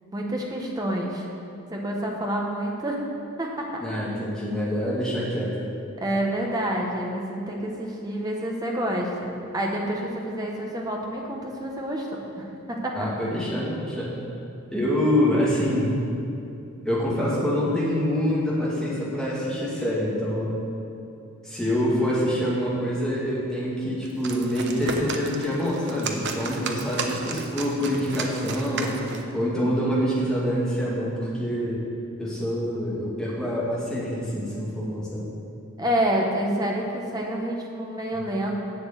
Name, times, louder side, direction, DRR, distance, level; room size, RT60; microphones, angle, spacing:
voice 1, 0.1-1.2 1.7-3.0 3.4-3.8 6.0-13.0 35.8-38.6, right 1 dB, 20° right, -1 dB, 1.2 m, -28 dB
voice 2, 3.8-5.5 12.9-14.1 14.7-15.9 16.8-20.6 21.4-28.9 29.3-31.9 32.2-35.2, equal, 5° left, -7 dB, 2.3 m, -26 dB
sound 1, 24.0-29.3, right 4 dB, 55° right, 0.8 m, -33 dB
7.6 x 7.1 x 8.2 m, 2.8 s
head